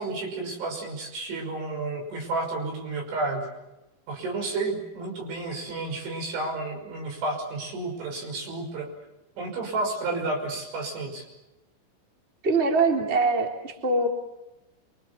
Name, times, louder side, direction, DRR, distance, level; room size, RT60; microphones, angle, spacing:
voice 1, 0.0-3.5 4.1-8.9 9.4-11.2, right 2 dB, 80° right, 3 dB, 8.2 m, -31 dB
voice 2, 12.4-14.1, right 3 dB, 15° right, 2 dB, 2.6 m, -23 dB
27.5 x 25.5 x 7.2 m, 0.99 s
omnidirectional pair, 5.3 m